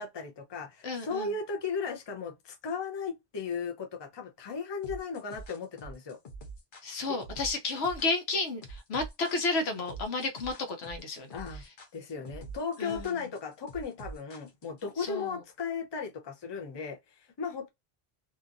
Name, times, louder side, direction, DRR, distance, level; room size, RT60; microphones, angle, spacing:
voice 1, 0.0-6.2 7.1-7.2 11.3-11.6 11.9-17.7, left 5 dB, 30° left, 0.5 m, -36 dB
voice 2, 0.8-1.3 6.8-11.3 12.8-13.1 15.0-15.4, left 3 dB, 85° left, 1.0 m, -32 dB
sound 1, 4.8-14.9, right 3 dB, 55° left, 0.9 m, -45 dB
2.8 x 2.5 x 2.5 m
omnidirectional pair, 1.0 m